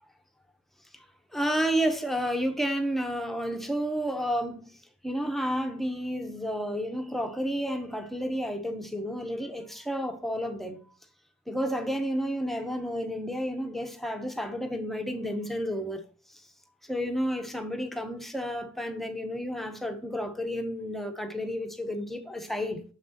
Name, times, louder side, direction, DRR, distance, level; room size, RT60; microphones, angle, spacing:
voice 1, 1.3-4.8 5.0-10.8 11.5-16.0 16.9-22.8, equal, ahead, 0.7 m, -31 dB
7.2 x 5.9 x 2.8 m
head